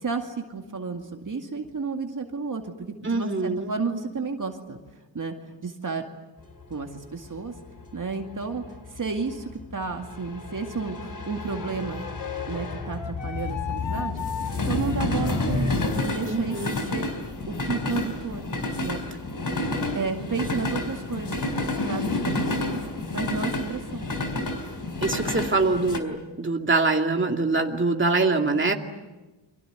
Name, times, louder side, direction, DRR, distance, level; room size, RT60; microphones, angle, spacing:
voice 1, 0.0-4.8 5.1-5.3 5.6-6.0 6.7-7.5 7.9-12.0 12.5-14.2 14.7-17.1 17.5-18.5 18.8-19.0 19.9-22.8 23.1-24.1, right 4 dB, 45° right, 3 dB, 2.3 m, -32 dB
voice 2, 3.0-3.7 16.3-16.8 25.0-28.7, right 3 dB, 25° right, 3 dB, 2.5 m, -24 dB
sound 1, 6.5-26.0, left 2 dB, 45° left, 4.2 m, -30 dB
Wind instrument woodwind instrument, 11.5-16.8, left 8 dB, 80° left, 1.9 m, -37 dB
30.0 x 24.5 x 8.1 m, 1.1 s
wide cardioid pair, 90°, 44 cm